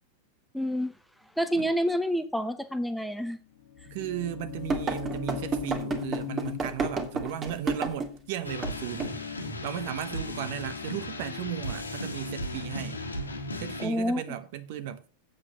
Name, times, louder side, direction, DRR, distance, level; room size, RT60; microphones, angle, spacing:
voice 1, 0.5-0.9 1.4-3.4 13.8-14.2, equal, ahead, 0.9 m, -28 dB
sound 1, 3.5-9.3, left 11 dB, 50° left, 1.4 m, -40 dB
voice 2, 3.9-9.2 9.6-13.0 13.6-15.1, right 11 dB, 50° right, 1.0 m, -36 dB
sound 2, 4.7-8.2 8.6-8.7 9.0-9.2, right 4 dB, 20° right, 2.0 m, -31 dB
sound 3, 8.4-13.9, left 1 dB, 80° left, 1.7 m, -36 dB
7.9 x 7.8 x 6.1 m
figure-of-eight pair, 90°, 0 cm